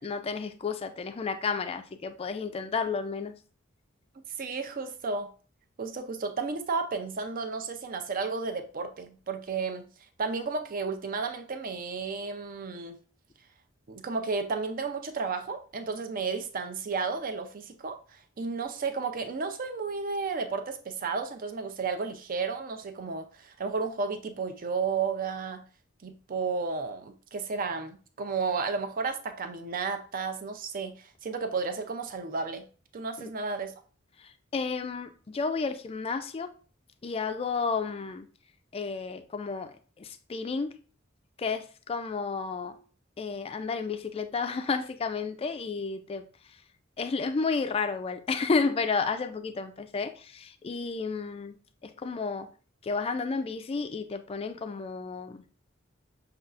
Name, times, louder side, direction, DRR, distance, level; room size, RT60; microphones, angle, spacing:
voice 1, 0.0-3.4 33.2-33.3 34.2-36.5 37.0-38.3 38.7-40.8 41.4-42.8 43.2-46.6 47.0-51.6 51.8-52.5 52.8-55.4, left 4 dB, 30° left, 0.3 m, -32 dB
voice 2, 4.2-5.3 5.8-9.8 10.2-13.0 13.9-25.6 26.0-32.7 32.9-33.7, right 4 dB, 45° right, 0.5 m, -33 dB
6.5 x 2.4 x 2.4 m
head